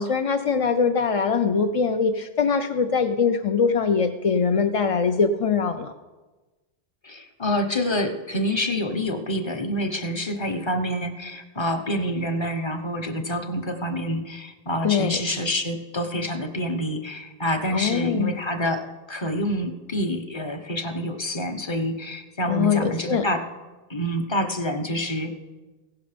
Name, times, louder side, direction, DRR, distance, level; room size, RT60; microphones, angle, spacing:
voice 1, 0.0-5.9 14.8-15.2 17.7-18.3 22.5-23.2, left 5 dB, 45° left, 7 dB, 0.4 m, -22 dB
voice 2, 7.0-23.4 23.9-25.3, equal, 25° left, 6 dB, 1.1 m, -27 dB
16.5 x 10.5 x 5.1 m, 1.2 s
omnidirectional pair, 1.1 m